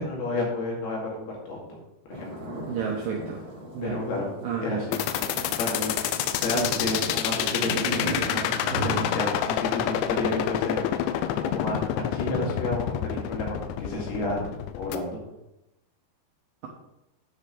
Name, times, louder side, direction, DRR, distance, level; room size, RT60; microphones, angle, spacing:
voice 1, 0.0-1.8 2.1-2.5 3.8-4.3 4.6-5.0 5.6-5.9 6.3-10.8 11.4-11.9 12.1-14.4 14.8-15.2, left 2 dB, 65° left, -2 dB, 4.0 m, -31 dB
sound 1, 2.1-9.2, equal, 25° right, 3.3 m, -36 dB
voice 2, 2.7-3.4 3.7-4.0 4.4-4.8 6.3-6.7, right 7 dB, 75° right, 0 dB, 2.1 m, -31 dB
sound 2, 4.9-15.0, left 10 dB, 85° left, 2.9 m, -28 dB
9.6 x 5.2 x 6.0 m, 0.92 s
omnidirectional pair, 5.2 m